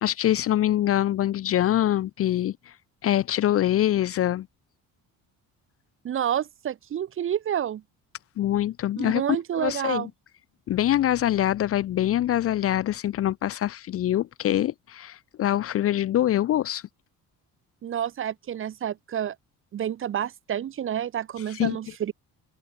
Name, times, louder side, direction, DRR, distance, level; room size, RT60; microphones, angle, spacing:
voice 1, 0.0-2.6 3.0-4.5 8.4-9.2 9.6-10.1 10.7-16.8 21.5-21.8, left 12 dB, 45° left, 0.4 m, -24 dB
voice 2, 6.0-7.8 9.0-10.1 17.8-19.4 19.7-22.1, right 10 dB, 35° right, 0.7 m, -29 dB
open air
cardioid pair, 145°, 35 cm